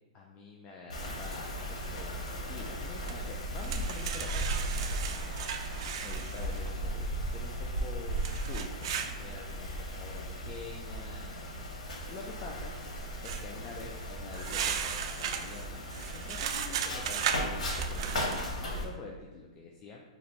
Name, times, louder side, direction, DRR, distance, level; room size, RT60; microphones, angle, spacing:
voice 1, 0.1-5.4 6.0-11.7 12.1-12.7 13.2-15.8 16.1-20.1, left 4 dB, 25° left, -2 dB, 0.4 m, -47 dB
Wind, 0.9-18.8, equal, 90° left, 0.8 m, -36 dB
sound 1, 3.1-3.2 3.6-6.7 8.2-9.1 13.2-13.4 14.3-18.5, right 8 dB, 55° right, 0.3 m, -36 dB
2.9 x 2.6 x 4.2 m, 1.2 s
hypercardioid pair, 145°, 4 cm